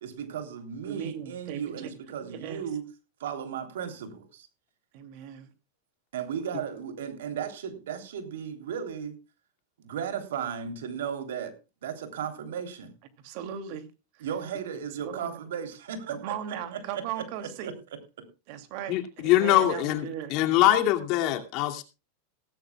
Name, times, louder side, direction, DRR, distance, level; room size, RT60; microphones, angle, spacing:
voice 1, 0.0-2.8 3.2-4.5 6.1-9.2 9.8-11.5 11.8-12.9 14.2-17.7 18.2-18.3, right 8 dB, 80° right, 7 dB, 3.3 m, -35 dB
voice 2, 0.8-1.9 2.2-2.6 4.9-5.5 13.2-13.8 14.2-14.3 14.5-14.6 15.0-15.3 16.1-17.7 18.5-20.4, right 9 dB, 55° right, 9 dB, 2.6 m, -37 dB
voice 3, 18.9-21.8, left 13 dB, 50° left, 5 dB, 2.5 m, -23 dB
17.0 x 15.5 x 2.3 m, 0.29 s
supercardioid pair, 135°, 0 cm